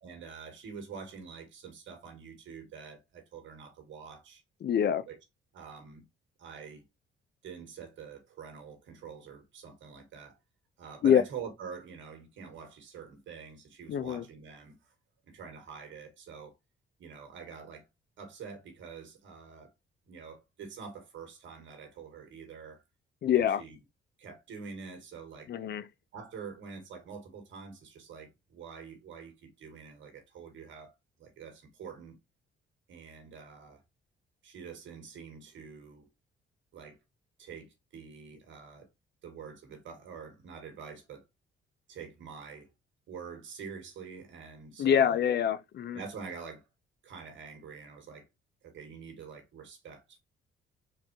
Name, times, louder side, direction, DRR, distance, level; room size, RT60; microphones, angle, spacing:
voice 1, 0.0-4.4 5.1-5.2 5.5-6.1 6.4-6.8 7.4-10.4 10.8-14.9 15.2-16.5 17.0-17.9 18.2-19.7 20.1-22.8 23.3-23.8 24.2-25.5 26.1-30.9 31.2-32.2 32.9-33.8 34.4-36.1 36.7-37.0 37.4-38.9 39.2-41.3 41.9-42.7 43.1-45.2 45.9-46.7 47.0-48.3 48.6-50.2, right 6 dB, 70° right, 1.9 m, -46 dB
voice 2, 4.6-5.0 11.0-11.2 13.9-14.2 23.2-23.6 25.5-25.8 44.8-46.0, left 9 dB, 55° left, 0.7 m, -25 dB
4.5 x 3.7 x 3.1 m
cardioid pair, 90°, 20 cm